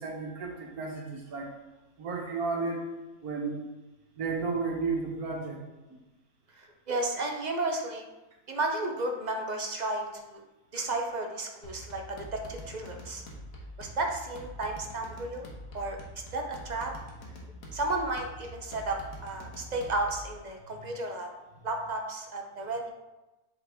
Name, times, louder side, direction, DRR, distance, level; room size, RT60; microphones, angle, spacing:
voice 1, 0.0-1.5 2.0-2.8 3.2-3.6 4.2-5.6 19.6-19.7, right 4 dB, 80° right, 0 dB, 1.7 m, -33 dB
voice 2, 6.6-8.1 8.5-10.4 10.7-13.2 13.8-15.5 15.7-16.0 16.3-16.9 17.7-21.3 21.6-22.9, right 2 dB, 45° right, 2 dB, 0.6 m, -33 dB
sound 1, 11.6-20.4, equal, 70° left, 1.5 m, -45 dB
7.5 x 4.6 x 3.5 m, 1.1 s
omnidirectional pair, 1.5 m